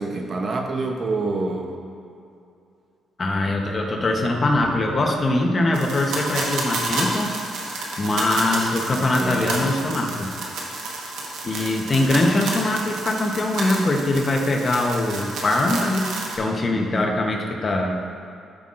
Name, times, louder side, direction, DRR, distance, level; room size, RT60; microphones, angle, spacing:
voice 1, 0.0-1.8 3.4-3.6 9.0-9.8 16.7-17.2, right 3 dB, 45° right, 3 dB, 0.8 m, -28 dB
voice 2, 3.2-7.4 8.0-10.3 11.4-16.1 16.4-17.9, left 2 dB, 35° left, 1 dB, 1.0 m, -22 dB
sound 1, 5.7-16.4, right 2 dB, 80° right, 1.2 m, -30 dB
13.5 x 5.5 x 2.6 m, 2.6 s
cardioid pair, 90°, 0 cm